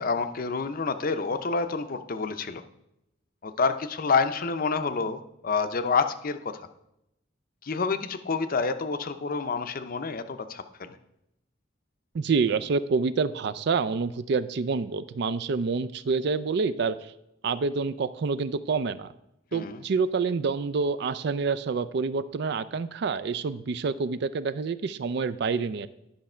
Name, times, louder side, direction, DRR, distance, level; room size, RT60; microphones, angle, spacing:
voice 1, 0.0-2.6 3.4-6.6 7.6-11.0 19.5-19.8, left 4 dB, 45° left, 10 dB, 0.6 m, -28 dB
voice 2, 12.1-17.0 17.4-19.1 19.5-25.9, right 4 dB, 60° right, 15 dB, 0.4 m, -27 dB
10.5 x 5.7 x 4.4 m, 0.83 s
head